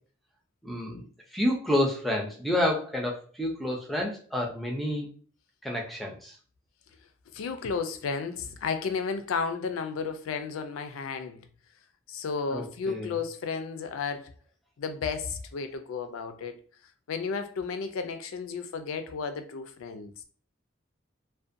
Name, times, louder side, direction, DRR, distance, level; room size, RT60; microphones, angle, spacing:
voice 1, 0.6-1.1 1.3-5.1 5.6-6.3 12.5-13.1, left 1 dB, ahead, 0.4 m, -29 dB
voice 2, 7.3-11.4 12.1-14.3 14.8-16.6 17.1-20.1, left 5 dB, 90° left, 0.4 m, -33 dB
2.5 x 2.1 x 2.5 m
head